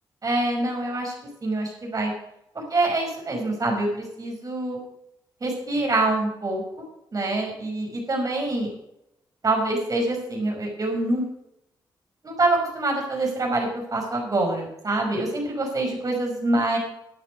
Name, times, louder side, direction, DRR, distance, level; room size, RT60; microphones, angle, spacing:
voice 1, 0.2-1.1 1.4-2.1 2.5-4.8 5.4-6.9 7.1-8.7 9.4-11.2 12.2-16.8, right 2 dB, 45° right, 1 dB, 5.5 m, -25 dB
12.5 x 9.0 x 5.3 m, 0.82 s
cardioid pair, 70°, 9 cm